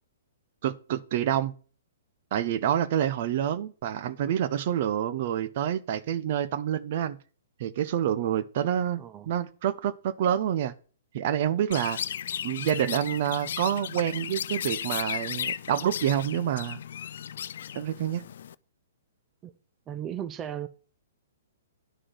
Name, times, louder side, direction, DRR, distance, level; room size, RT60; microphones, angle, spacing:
voice 1, 0.6-1.5 2.3-7.2 7.6-9.0 9.3-10.7 11.1-12.0 12.4-16.8 17.7-18.2, right 10 dB, 50° right, 0.9 m, -27 dB
voice 2, 9.0-9.3 19.4-19.5 19.9-20.7, right 10 dB, 25° right, 0.7 m, -36 dB
Chirp tweet, 11.7-18.5, left 9 dB, 60° left, 0.4 m, -35 dB
11.5 x 6.3 x 6.2 m
figure-of-eight pair, 120°, 0 cm